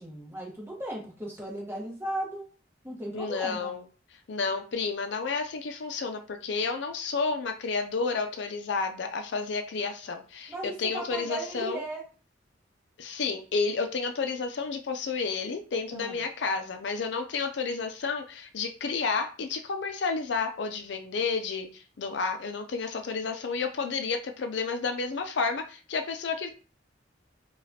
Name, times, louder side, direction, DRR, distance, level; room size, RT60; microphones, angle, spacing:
voice 1, 0.0-2.5 2.8-3.7 10.5-12.0 15.9-16.2, right 1 dB, 15° right, -1 dB, 1.1 m, -36 dB
voice 2, 3.1-3.8 4.3-11.8 13.0-26.5, left 4 dB, 65° left, 6 dB, 0.4 m, -31 dB
4.9 x 2.3 x 2.7 m, 0.37 s
head